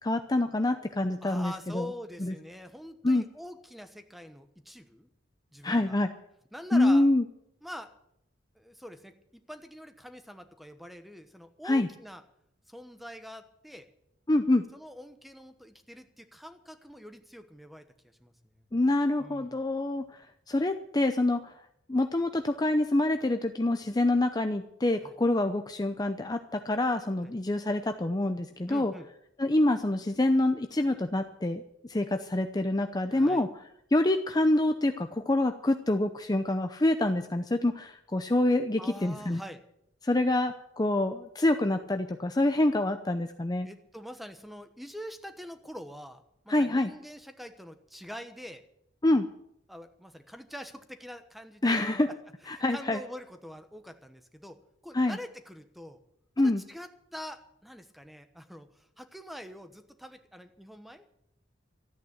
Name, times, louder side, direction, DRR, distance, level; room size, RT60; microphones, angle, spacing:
voice 1, 0.0-1.9 2.2-2.3 3.0-3.2 5.6-6.1 6.7-7.2 11.6-11.9 14.3-14.6 18.7-20.0 20.5-21.5 21.9-28.9 29.4-31.6 31.9-33.5 33.9-39.4 40.0-43.7 46.5-46.9 49.0-49.3 51.6-52.1 52.5-53.0 54.9-55.2 56.4-56.6, left 1 dB, 20° left, 7 dB, 0.6 m, -26 dB
voice 2, 1.2-5.1 5.5-6.0 6.5-7.1 7.6-7.9 8.5-12.2 12.7-13.9 14.7-18.7 19.2-19.6 25.0-25.1 27.2-27.3 28.7-29.1 33.1-33.4 38.8-39.6 43.6-48.6 49.7-52.2 52.4-54.6 54.8-56.0 56.4-61.1, equal, ahead, 8 dB, 1.1 m, -45 dB
13.5 x 9.2 x 8.7 m, 0.75 s
head